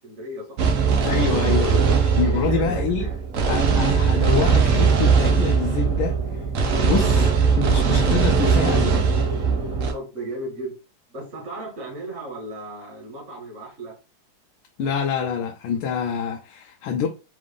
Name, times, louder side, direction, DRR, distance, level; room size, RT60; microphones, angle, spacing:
voice 1, 0.0-0.6 2.2-3.2 9.9-10.8 11.1-14.0, right 1 dB, 35° right, 1.8 m, -35 dB
sound 1, 0.6-9.9, right 5 dB, 90° right, 0.6 m, -20 dB
voice 2, 1.0-3.0 3.4-6.4 6.8-7.3 7.5-9.0 14.8-17.1, left 6 dB, 75° left, 1.4 m, -26 dB
3.9 x 3.4 x 3.5 m
omnidirectional pair, 2.4 m